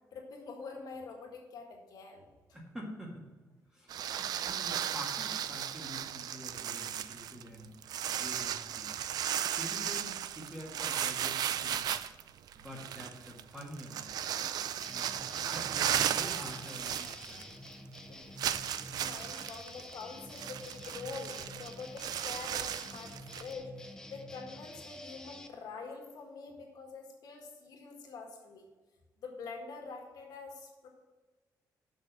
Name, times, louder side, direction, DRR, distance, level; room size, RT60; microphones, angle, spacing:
voice 1, 0.1-2.3 18.1-18.2 18.6-28.6 29.2-30.9, left 4 dB, 65° left, 1 dB, 1.7 m, -45 dB
voice 2, 2.5-3.3 3.7-9.0 9.5-11.9 12.5-14.3 14.9-17.5, equal, 5° right, -2 dB, 1.8 m, -47 dB
sound 1, 3.9-17.7 18.0-18.1 18.4-23.5, right 10 dB, 65° right, 0.4 m, -35 dB
sound 2, 14.8-25.5, left 1 dB, 10° left, 0.5 m, -49 dB
6.6 x 5.9 x 7.3 m, 1.3 s
wide cardioid pair, 175°, 7 cm